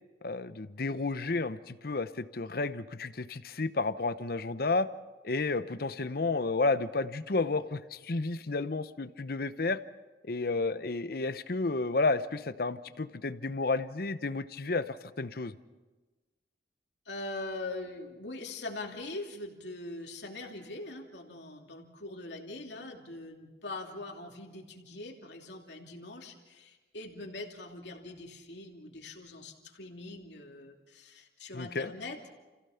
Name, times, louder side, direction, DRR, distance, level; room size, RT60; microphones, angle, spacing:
voice 1, 0.2-4.9 5.2-9.8 10.2-15.5 31.5-31.9, left 3 dB, 55° left, 13 dB, 0.8 m, -31 dB
voice 2, 17.1-32.2, left 2 dB, 80° left, 1 dB, 2.8 m, -42 dB
29.5 x 16.0 x 5.8 m, 1.2 s
head